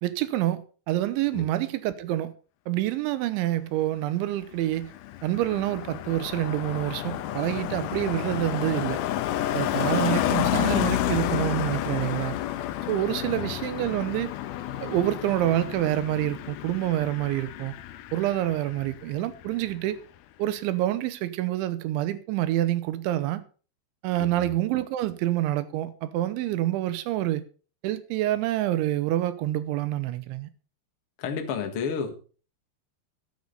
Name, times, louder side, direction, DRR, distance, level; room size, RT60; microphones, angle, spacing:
voice 1, 0.0-2.3 2.7-4.9 5.2-9.0 9.5-12.3 12.9-14.3 14.8-17.7 18.1-20.0 20.4-23.4 24.0-27.4 27.8-30.5, right 14 dB, 85° right, 3.2 m, -27 dB
Car passing by, 4.4-19.2 19.4-19.7, left 13 dB, 80° left, 2.3 m, -30 dB
voice 2, 24.2-24.5 31.2-32.1, left 6 dB, 60° left, 1.4 m, -32 dB
14.5 x 10.5 x 4.0 m
omnidirectional pair, 5.3 m